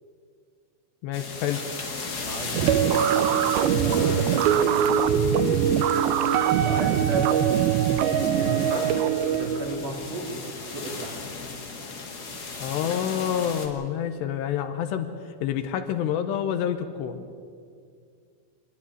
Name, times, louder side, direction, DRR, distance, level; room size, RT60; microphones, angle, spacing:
voice 1, 1.0-1.7 12.6-15.1 15.4-17.3, left 9 dB, 75° left, 8 dB, 2.9 m, -28 dB
sound 1, 1.1-13.7, left 4 dB, 50° left, 1.1 m, -36 dB
voice 2, 2.2-3.3 3.6-5.5 6.6-7.5 8.4-8.9 9.2-10.4 10.7-11.2, right 2 dB, 45° right, 0 dB, 3.1 m, -35 dB
sound 2, 2.5-9.3, right 12 dB, 85° right, 2.2 m, -26 dB
sound 3, 2.7-9.5, right 7 dB, 70° right, 2.5 m, -24 dB
26.0 x 11.0 x 9.7 m, 2.3 s
omnidirectional pair, 5.2 m